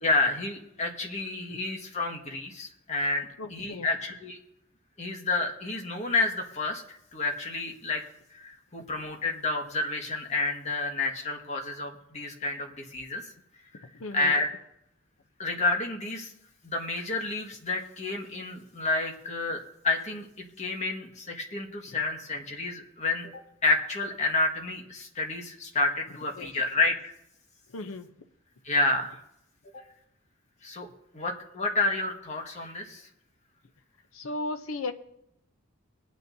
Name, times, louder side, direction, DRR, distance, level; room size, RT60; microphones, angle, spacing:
voice 1, 0.0-4.4 5.0-8.0 8.3-13.2 14.1-14.5 15.4-16.3 16.6-20.3 20.6-23.3 23.6-27.1 28.6-29.2 30.6-30.9 31.1-33.0, left 2 dB, 35° left, 2 dB, 1.5 m, -29 dB
voice 2, 3.4-3.9 14.0-14.3 26.4-26.5 27.7-28.1 34.1-34.9, left 2 dB, 80° left, 8 dB, 0.7 m, -35 dB
22.5 x 9.2 x 2.7 m, 0.79 s
head